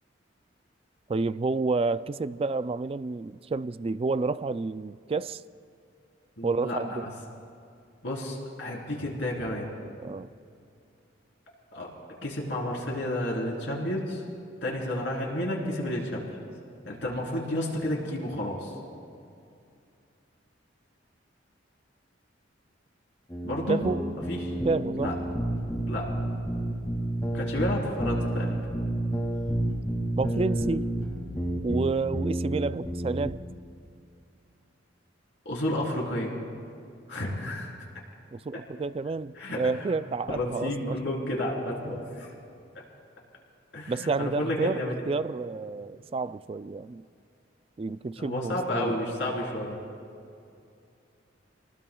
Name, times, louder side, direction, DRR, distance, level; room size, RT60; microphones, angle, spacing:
voice 1, 1.1-5.4 6.4-7.1 10.0-10.3 23.7-24.0 24.6-25.2 30.2-30.8 31.6-33.4 38.3-41.0 43.9-47.0 47.8-48.9, right 3 dB, 30° right, 15 dB, 0.3 m, -30 dB
voice 2, 6.4-7.1 8.0-9.7 11.7-11.9 12.2-14.2 14.6-16.3 16.8-18.8 23.4-23.8 24.3-24.5 25.0-25.1 25.9-26.1 27.3-28.6 35.5-36.3 37.1-37.7 39.4-39.6 39.9-40.0 40.3-42.3 43.7-45.0 48.2-49.8, left 1 dB, 65° left, -3 dB, 3.7 m, -31 dB
sound 1, 23.3-33.3, right 1 dB, 20° left, 2.1 m, -30 dB
29.0 x 19.5 x 2.3 m, 2.5 s
head